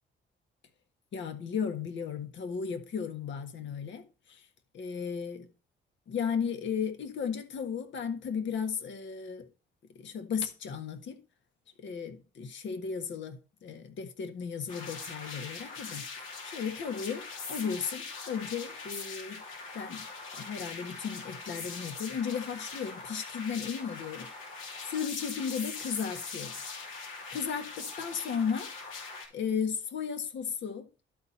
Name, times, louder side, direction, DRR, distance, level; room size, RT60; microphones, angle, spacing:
voice 1, 1.1-4.4 4.7-5.5 6.1-9.4 9.9-11.2 11.8-19.4 19.7-20.1 20.4-24.3 24.6-26.5 27.3-28.7 29.3-30.9, left 6 dB, 70° left, 1.5 m, -35 dB
sound 1, 14.7-29.3, left 4 dB, 85° left, 2.8 m, -42 dB
12.0 x 4.3 x 4.2 m
cardioid pair, 90°, 20 cm